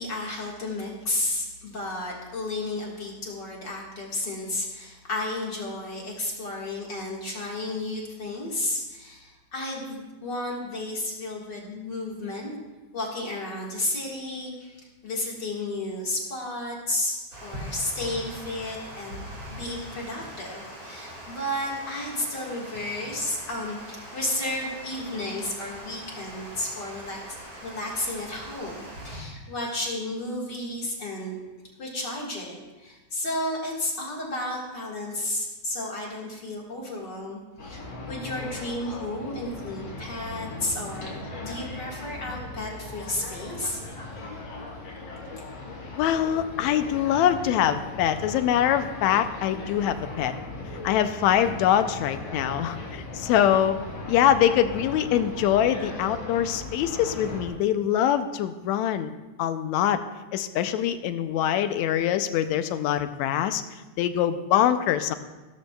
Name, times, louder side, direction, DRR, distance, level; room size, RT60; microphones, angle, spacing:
voice 1, 0.0-12.5 12.9-27.4 27.6-31.4 31.8-43.8 44.2-44.3, left 1 dB, 40° left, -3 dB, 2.1 m, -32 dB
Water, 17.3-29.2, equal, 55° right, 5.5 m, -42 dB
sound 1, 37.6-57.5, left 2 dB, 60° left, 3.7 m, -38 dB
voice 2, 46.0-50.3 50.8-59.1 59.4-60.0 60.3-63.6 64.0-65.1, left 10 dB, 80° left, 10 dB, 1.9 m, -24 dB
16.5 x 13.0 x 2.3 m, 1.1 s
omnidirectional pair, 3.3 m